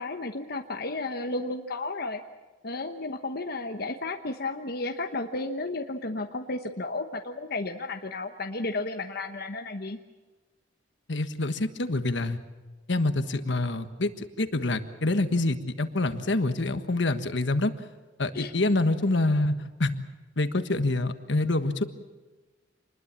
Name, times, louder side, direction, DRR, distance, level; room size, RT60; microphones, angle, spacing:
voice 1, 0.0-2.2 2.6-10.0 18.3-18.5, left 2 dB, 55° left, 4 dB, 1.1 m, -33 dB
voice 2, 11.1-12.4 12.9-17.7 18.2-19.5 19.8-20.0 20.4-21.8, left 2 dB, 70° left, 9 dB, 1.4 m, -26 dB
26.5 x 21.0 x 7.4 m, 1.2 s
head